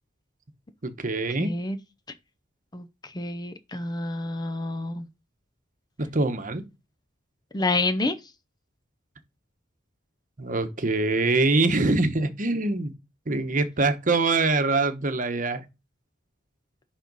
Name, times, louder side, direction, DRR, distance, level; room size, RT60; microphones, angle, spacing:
voice 1, 0.8-1.5 6.0-6.6 10.4-12.9 13.3-15.6, right 3 dB, 40° right, 1.0 m, -24 dB
voice 2, 1.4-1.8 2.7-5.1 7.5-8.2, left 2 dB, 20° left, 0.6 m, -28 dB
11.0 x 4.1 x 4.1 m
head